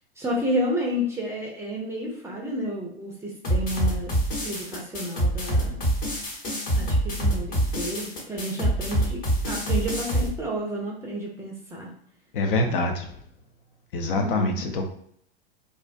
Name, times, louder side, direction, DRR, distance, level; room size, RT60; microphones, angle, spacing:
voice 1, 0.2-4.1 4.4-5.8 6.7-11.9 14.1-14.6, equal, 10° right, -3 dB, 0.5 m, -31 dB
sound 1, 3.4-10.3, right 1 dB, 30° left, 0.9 m, -25 dB
voice 2, 12.3-13.2 13.9-14.8, left 2 dB, 60° left, 4 dB, 0.5 m, -25 dB
2.4 x 2.1 x 2.5 m, 0.69 s
figure-of-eight pair, 95°, 31 cm